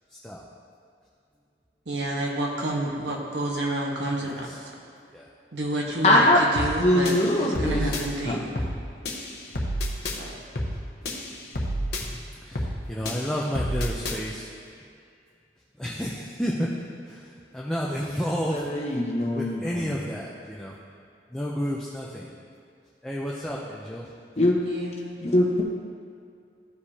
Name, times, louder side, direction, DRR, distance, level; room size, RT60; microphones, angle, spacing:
voice 1, 1.8-4.3 5.5-8.5 10.1-10.3 24.6-25.2, right 1 dB, 80° right, -2 dB, 1.3 m, -29 dB
voice 2, 4.2-4.6 5.1-5.3 7.6-8.0 12.1-12.2 12.4-14.5 15.8-16.7 17.0-18.6 19.3-20.7 21.3-22.3 23.0-24.1, equal, 5° left, -5 dB, 0.6 m, -31 dB
voice 3, 6.0-6.4 6.8-7.9 8.2-8.4 18.5-19.9 24.4-24.6 25.2-25.6, left 1 dB, 35° left, -2 dB, 1.0 m, -22 dB
sound 1, 6.6-6.8 7.1-8.0 8.6-8.8 9.1-10.2 10.6-10.8 11.1-12.0 12.6-12.8 13.1-14.2, equal, 60° left, 1.0 m, -29 dB
14.5 x 5.1 x 2.8 m, 2.3 s
head